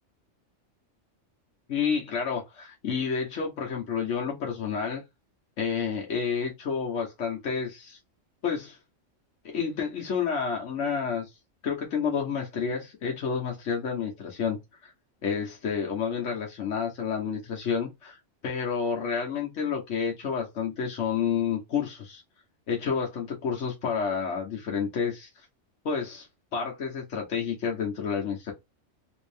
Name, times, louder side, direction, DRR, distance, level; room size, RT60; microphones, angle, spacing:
voice 1, 1.7-5.0 5.6-8.0 8.4-8.8 9.5-11.3 11.6-14.9 15.2-18.2 18.4-22.2 22.7-25.3 25.8-26.3 26.5-28.5, left 6 dB, 80° left, 1.2 m, -30 dB
3.6 x 2.6 x 3.3 m
omnidirectional pair, 1.3 m